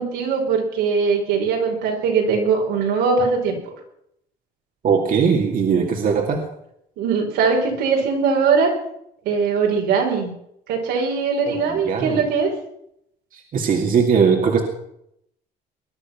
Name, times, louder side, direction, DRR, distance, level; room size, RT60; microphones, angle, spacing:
voice 1, 0.0-3.7 7.0-8.7 9.3-10.3 10.7-12.5, right 5 dB, 85° right, 0 dB, 5.2 m, -21 dB
voice 2, 4.8-6.4 11.5-12.2 13.3-14.6, right 6 dB, 55° right, 2 dB, 2.5 m, -20 dB
21.5 x 11.5 x 6.0 m, 0.76 s
cardioid pair, 110°, 17 cm